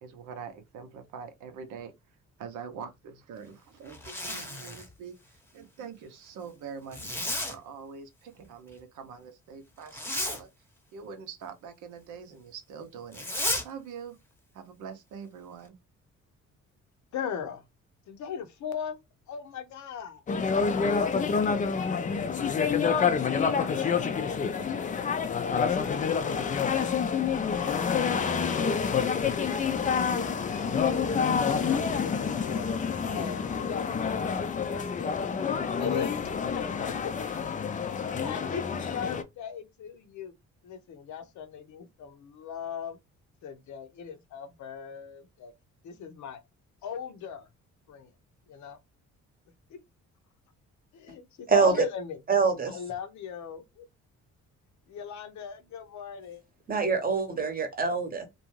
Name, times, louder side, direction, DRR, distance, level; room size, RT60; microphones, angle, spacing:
voice 1, 0.0-1.9 2.4-5.1 5.5-7.0 7.5-10.5 10.9-13.2 13.6-14.2 14.5-15.8, right 6 dB, 80° right, 0.7 m, -44 dB
Zipper (clothing), 3.9-4.9 6.9-7.6 9.9-10.4 13.1-13.7, left 1 dB, 5° left, 0.8 m, -32 dB
voice 2, 17.1-17.6 18.1-19.0 19.3-20.2 20.7-22.4 22.8-26.9 27.5-31.0 31.3-32.7 33.1-34.3 34.7-35.4 35.7-36.2 36.5-37.1 38.2-38.6 38.9-40.3 40.6-43.0 43.4-45.5 45.8-46.4 46.8-47.5 47.9-48.1 48.5-48.8 49.7-49.8 50.9-52.2 52.7-53.9 54.9-56.4, left 7 dB, 70° left, 0.7 m, -39 dB
sound 1, 20.3-39.2, left 6 dB, 25° left, 0.4 m, -28 dB
voice 3, 52.3-52.8 56.7-58.3, right 5 dB, 30° right, 0.9 m, -25 dB
2.5 x 2.2 x 3.0 m
cardioid pair, 90°, 30 cm